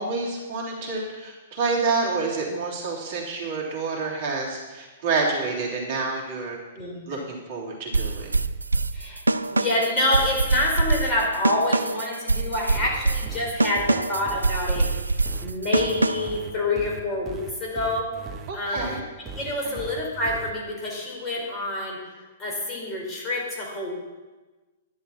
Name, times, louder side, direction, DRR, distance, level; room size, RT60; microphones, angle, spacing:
voice 1, 0.0-6.6 7.1-8.3 18.5-19.0 19.6-19.8, right 4 dB, 50° right, -3 dB, 3.1 m, -28 dB
voice 2, 6.8-7.2 8.9-19.0 19.3-22.0 22.4-23.9, left 1 dB, 25° left, -2 dB, 4.2 m, -27 dB
sound 1, 7.9-16.4, right 3 dB, 85° right, 0.4 m, -24 dB
sound 2, 12.8-20.5, right 4 dB, 25° right, 1.2 m, -38 dB
11.0 x 11.0 x 4.3 m, 1.2 s
figure-of-eight pair, 110°, 0 cm